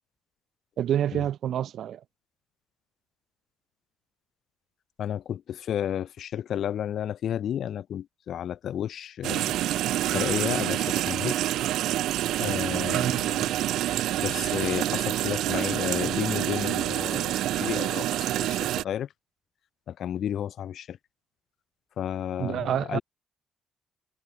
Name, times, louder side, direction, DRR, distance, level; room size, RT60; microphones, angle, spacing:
voice 1, 0.8-2.0 12.9-13.2 22.4-23.0, right 10 dB, 70° right, 5.8 m, -27 dB
voice 2, 5.0-9.5 10.1-11.4 12.4-13.3 14.2-18.1 18.3-19.1 19.9-21.0 22.0-23.0, left 10 dB, 65° left, 7.9 m, -32 dB
sound 1, 9.2-18.8, right 13 dB, 85° right, 1.8 m, -27 dB
cardioid pair, 90°, 0 cm